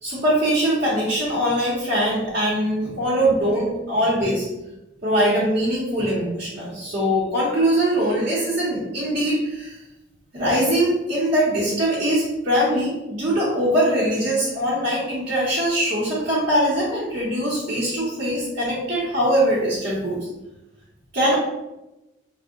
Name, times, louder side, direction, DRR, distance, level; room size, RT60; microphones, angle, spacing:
voice 1, 0.0-4.5 5.0-9.8 10.3-20.2 21.1-21.3, equal, 50° right, -8 dB, 0.8 m, -22 dB
2.6 x 2.1 x 3.6 m, 0.98 s
head